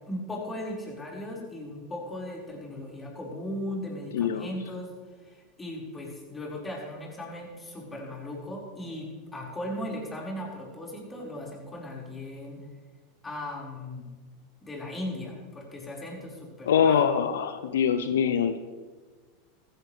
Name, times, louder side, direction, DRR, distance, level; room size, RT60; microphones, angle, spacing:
voice 1, 0.1-5.0 5.2-12.6 13.2-14.1 14.6-17.0, left 1 dB, 20° left, -3 dB, 5.2 m, -37 dB
voice 2, 4.1-4.5 16.6-18.6, left 7 dB, 80° left, 10 dB, 0.7 m, -24 dB
15.5 x 14.5 x 3.4 m, 1.4 s
hypercardioid pair, 95°, 0 cm